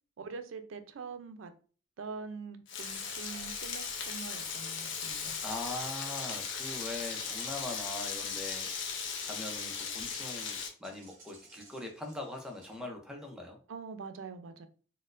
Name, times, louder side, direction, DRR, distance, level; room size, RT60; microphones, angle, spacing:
voice 1, 0.2-1.5 2.0-5.3 13.7-14.7, right 5 dB, 85° right, 9 dB, 0.4 m, -44 dB
Frying (food), 2.7-10.7, left 6 dB, 65° left, 0.6 m, -37 dB
Insect, 2.8-5.6 6.0-10.2 10.8-12.8, right 3 dB, 45° right, 1.1 m, -57 dB
voice 2, 5.4-13.6, left 2 dB, 5° right, 1 dB, 0.5 m, -42 dB
4.2 x 2.1 x 2.4 m, 0.39 s
head